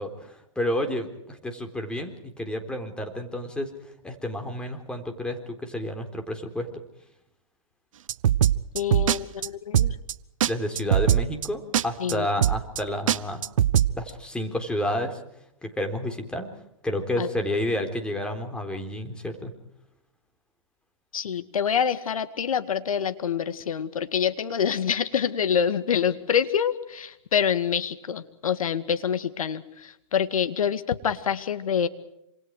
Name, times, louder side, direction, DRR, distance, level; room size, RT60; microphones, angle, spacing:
voice 1, 0.0-6.7 10.5-13.4 13.9-15.2 15.6-16.5 16.8-19.5, left 1 dB, 5° left, 5 dB, 3.9 m, -30 dB
sound 1, 8.1-9.2 9.4-9.5 9.7-10.1 10.4-10.5 10.8-11.5 11.7-11.8 12.1-12.2 12.4-12.8 13.1-13.9, right 10 dB, 70° right, 1.0 m, -21 dB
voice 2, 8.7-10.0 12.0-12.3 17.2-17.3 21.1-31.9, left 8 dB, 80° left, 11 dB, 2.1 m, -26 dB
27.5 x 27.0 x 4.8 m, 0.79 s
hypercardioid pair, 130°, 18 cm